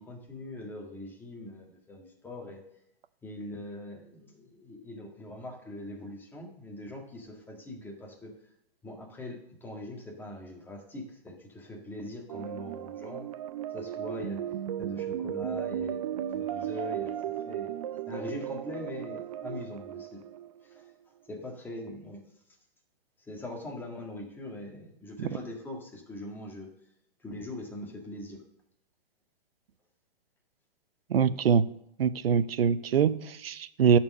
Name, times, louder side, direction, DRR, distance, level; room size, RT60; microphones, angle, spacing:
voice 1, 0.0-2.6 3.2-8.3 8.8-13.3 13.7-14.4 14.8-17.7 18.1-20.2 20.6-20.8 21.3-22.2 23.3-26.7 27.2-28.4, left 1 dB, 5° left, 0 dB, 1.7 m, -42 dB
sound 1, 12.3-20.9, right 10 dB, 40° right, 0.4 m, -35 dB
voice 2, 31.1-31.7 32.0-34.0, right 7 dB, 85° right, 14 dB, 0.7 m, -24 dB
11.0 x 4.6 x 6.4 m, 0.78 s
hypercardioid pair, 145°, 29 cm